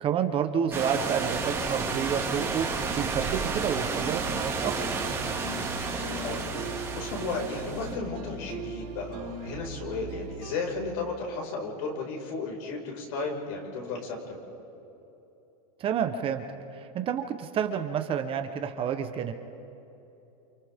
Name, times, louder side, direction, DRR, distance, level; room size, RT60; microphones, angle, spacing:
voice 1, 0.0-2.7 2.9-4.7 15.8-16.5 16.7-19.3, right 8 dB, 25° right, 7 dB, 1.0 m, -29 dB
sound 1, 0.7-7.9, right 4 dB, 10° right, 2.3 m, -31 dB
sound 2, 4.1-10.6, right 2 dB, 85° right, 3.9 m, -39 dB
voice 2, 5.9-14.4, left 3 dB, 60° left, 0 dB, 5.5 m, -34 dB
29.0 x 29.0 x 3.7 m, 2.9 s
supercardioid pair, 145°, 20 cm